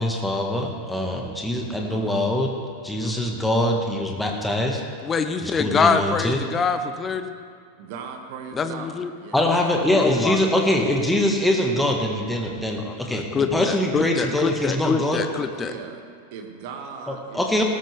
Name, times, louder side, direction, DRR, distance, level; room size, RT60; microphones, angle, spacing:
voice 1, 0.0-2.5 2.8-4.8 5.4-6.4 9.3-15.2 17.1-17.6, left 1 dB, 5° left, 1 dB, 1.6 m, -23 dB
voice 2, 5.0-7.3 8.5-9.1 9.9-10.4 12.8-15.7, left 5 dB, 20° left, 9 dB, 0.9 m, -25 dB
voice 3, 7.8-9.7 10.1-10.6 15.4-16.0 16.3-17.5, right 6 dB, 50° right, 3 dB, 2.0 m, -39 dB
18.0 x 14.0 x 3.5 m, 2.3 s
figure-of-eight pair, 90°, 0 cm